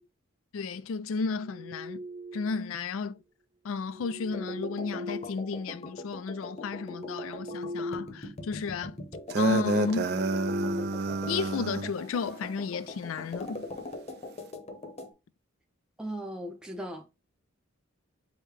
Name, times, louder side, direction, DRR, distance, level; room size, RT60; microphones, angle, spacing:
voice 1, 0.5-2.0 2.3-3.2 3.6-9.0 9.4-10.2 11.3-13.7, left 5 dB, 75° left, 0.4 m, -33 dB
sound 1, 1.3-2.8 3.8-5.9 6.3-8.2 8.5-8.7 9.2-11.6, left 1 dB, 25° right, 1.0 m, -40 dB
sound 2, 4.3-15.1, left 2 dB, 35° left, 0.8 m, -42 dB
sound 3, 9.3-11.9, right 4 dB, 55° right, 0.4 m, -29 dB
voice 2, 16.0-17.1, right 1 dB, 5° right, 0.5 m, -37 dB
5.0 x 2.1 x 4.7 m
head